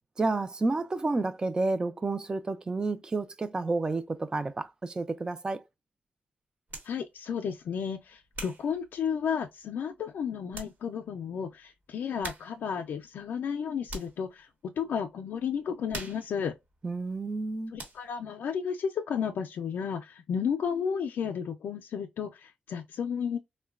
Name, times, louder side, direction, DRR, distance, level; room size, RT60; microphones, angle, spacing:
voice 1, 0.2-5.6 16.8-17.7, right 3 dB, 25° right, 0.4 m, -30 dB
sound 1, 6.7-7.0 7.6-9.6 10.1-10.2 10.5-10.8 11.1-11.2 12.2-12.7 13.0-14.3 14.8-15.0 15.3-17.5 17.8-18.2, right 2 dB, 65° right, 1.1 m, -44 dB
voice 2, 6.8-16.5 17.7-23.4, left 7 dB, 80° left, 0.3 m, -33 dB
3.7 x 2.1 x 2.3 m
wide cardioid pair, 145°, 3 cm